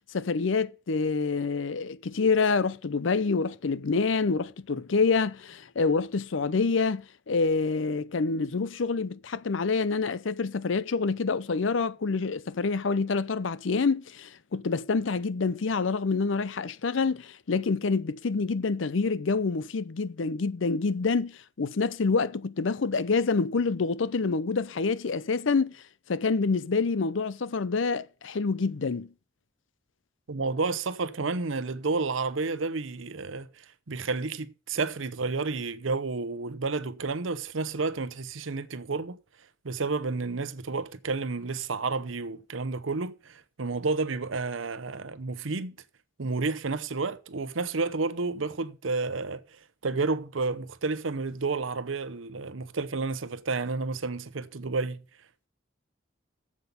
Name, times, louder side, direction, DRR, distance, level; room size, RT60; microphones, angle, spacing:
voice 1, 0.1-29.1, left 4 dB, 80° left, 0.6 m, -27 dB
voice 2, 30.3-39.2 39.6-45.7 46.2-55.0, right 3 dB, 90° right, 0.8 m, -31 dB
7.9 x 7.5 x 6.8 m
head